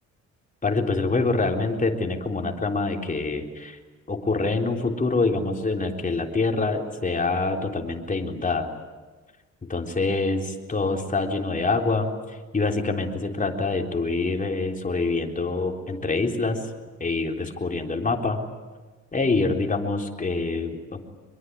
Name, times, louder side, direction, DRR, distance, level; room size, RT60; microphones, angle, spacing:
voice 1, 0.6-3.8 4.1-8.7 9.6-16.7 17.0-18.4 19.1-21.1, left 3 dB, 25° left, 2 dB, 3.6 m, -25 dB
24.0 x 22.5 x 9.4 m, 1.3 s
cardioid pair, 90°, 30 cm